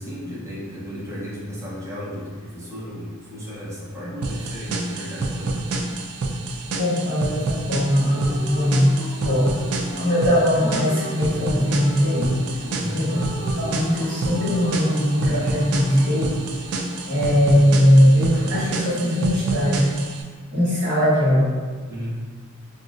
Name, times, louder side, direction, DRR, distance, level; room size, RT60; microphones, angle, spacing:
voice 1, 0.0-5.6 12.7-13.1 21.9-22.2, equal, 15° right, -8 dB, 0.7 m, -34 dB
sound 1, 4.2-20.2, right 2 dB, 90° right, 0.4 m, -28 dB
voice 2, 6.8-8.9 9.2-9.5 10.0-12.3 12.8-13.2 13.6-16.3 17.1-19.8 20.5-21.5, equal, 55° right, -15 dB, 1.1 m, -20 dB
sound 2, 7.7-18.7, left 1 dB, 20° left, 0.4 m, -38 dB
3.9 x 2.4 x 2.4 m, 1.5 s
head